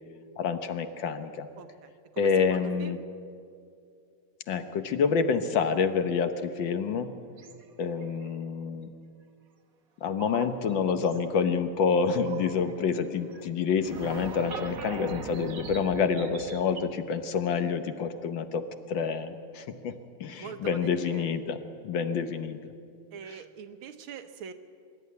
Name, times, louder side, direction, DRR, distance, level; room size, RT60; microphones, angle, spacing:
voice 1, 0.4-1.5 2.2-3.0 4.5-7.1 7.8-8.9 10.0-19.9 20.2-21.6 21.8-22.6, left 6 dB, 65° left, 9 dB, 1.6 m, -28 dB
voice 2, 1.6-3.0 20.4-21.3 23.1-24.5, right 7 dB, 75° right, 8 dB, 1.8 m, -43 dB
sound 1, 7.4-8.2 10.2-10.7 11.0-11.3 12.3-13.0 13.3-13.5 13.8-16.8, right 5 dB, 50° right, 1.3 m, -41 dB
24.0 x 12.0 x 9.5 m, 2.4 s
omnidirectional pair, 2.3 m